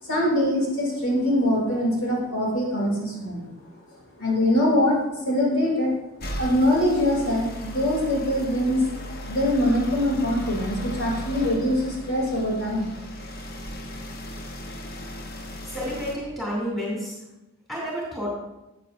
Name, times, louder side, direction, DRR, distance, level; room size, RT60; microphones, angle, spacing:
voice 1, 0.0-3.5 4.2-5.9 6.4-8.8 9.3-12.9, left 1 dB, 65° left, -4 dB, 3.1 m, -23 dB
sound 1, 6.2-16.2, equal, 45° left, 0.9 m, -36 dB
voice 2, 15.6-17.2 17.7-18.3, equal, ahead, -6 dB, 2.8 m, -30 dB
13.5 x 8.5 x 2.6 m, 0.96 s
head